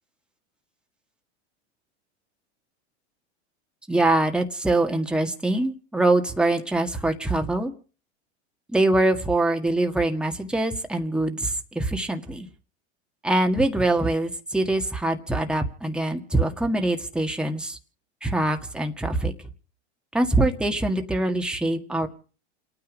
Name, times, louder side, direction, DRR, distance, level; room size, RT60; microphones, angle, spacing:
voice 1, 3.9-7.7 8.7-12.5 13.2-17.8 18.2-19.3 20.1-22.1, right 2 dB, 5° right, 4 dB, 1.7 m, -24 dB
29.0 x 9.7 x 5.1 m, 0.39 s
hypercardioid pair, 110°, 34 cm